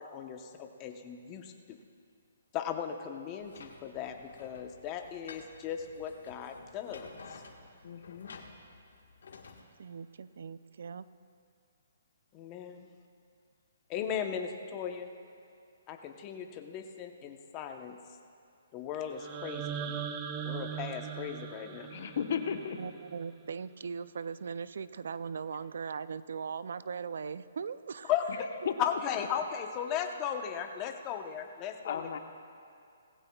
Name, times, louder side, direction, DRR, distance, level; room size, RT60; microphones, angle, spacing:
voice 1, 0.0-1.8 2.5-7.4 12.3-12.9 13.9-15.1 15.9-18.0 18.7-19.9 20.4-21.9 28.1-28.2 28.8-32.0, left 8 dB, 25° left, 4 dB, 0.9 m, -37 dB
sound 1, 3.4-9.6, left 4 dB, 75° left, 1.5 m, -52 dB
voice 2, 7.8-8.3 21.9-22.8 28.4-28.8 31.8-32.2, left 7 dB, 55° left, 6 dB, 1.0 m, -35 dB
voice 3, 9.8-11.1 22.8-28.1, right 6 dB, 70° right, 16 dB, 0.4 m, -39 dB
sound 2, 19.1-23.2, right 8 dB, 25° right, 0.7 m, -40 dB
19.0 x 15.5 x 2.3 m, 2.4 s
hypercardioid pair, 155°, 0 cm